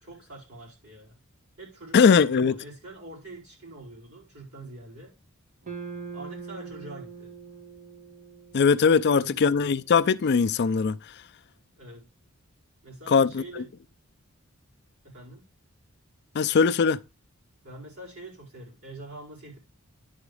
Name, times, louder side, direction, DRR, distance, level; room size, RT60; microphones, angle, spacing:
voice 1, 0.0-1.2 1.6-5.2 6.1-7.3 8.9-9.4 11.8-12.1 12.8-13.7 15.0-15.5 17.6-19.6, right 2 dB, 80° right, 4.9 m, -44 dB
voice 2, 1.9-2.5 8.5-11.0 13.1-13.6 16.3-17.0, left 5 dB, 50° left, 0.4 m, -20 dB
sound 1, 5.6-10.0, right 5 dB, 40° right, 1.3 m, -43 dB
10.5 x 4.0 x 4.8 m
head